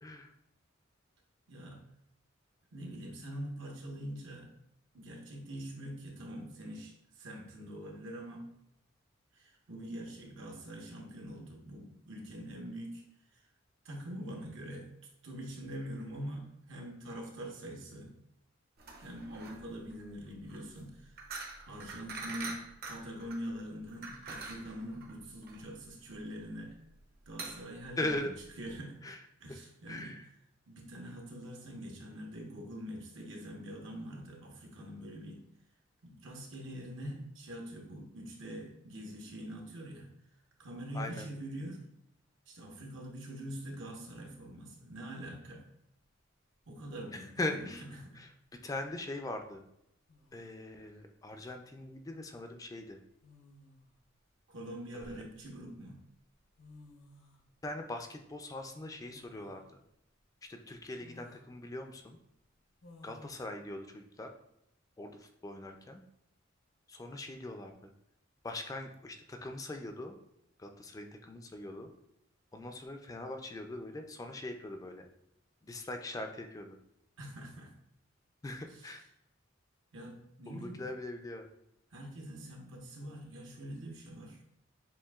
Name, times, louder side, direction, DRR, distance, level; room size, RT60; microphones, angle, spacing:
voice 1, 0.0-0.3 22.4-22.5 28.0-28.3 29.0-29.2 29.9-30.2 40.9-41.3 47.1-47.8 48.2-48.3 48.6-49.6 50.3-53.0 54.9-55.2 57.6-59.6 60.5-62.2 63.0-64.3 65.0-66.0 66.9-67.9 68.4-70.2 70.6-71.9 72.5-75.0 75.6-76.8 78.4-79.0 80.5-81.5, left 2 dB, 20° left, 5 dB, 0.3 m, -41 dB
voice 2, 1.5-1.8 2.7-4.5 4.9-8.5 9.3-13.0 13.3-13.4 13.8-14.9 15.2-18.1 18.9-21.2 21.7-26.8 27.3-28.3 28.6-29.0 29.4-30.2 30.7-35.4 36.0-40.1 40.6-41.8 42.5-45.6 46.7-48.2 54.5-56.0 77.2-77.7 78.6-78.9 79.9-80.9 81.9-84.4, equal, 75° right, 1 dB, 1.0 m, -44 dB
sound 1, 18.8-28.8, right 3 dB, 50° right, 0.7 m, -46 dB
sound 2, 46.0-46.1 47.6-48.1 49.6-49.7 50.1-50.6 51.9-52.1 53.2-54.0 54.6-55.6 56.3-56.4 56.6-57.4 59.1-59.7 60.2-60.3 61.0-61.5 62.8-63.4, left 2 dB, 80° left, 0.8 m, -57 dB
7.2 x 2.6 x 2.3 m, 0.79 s
head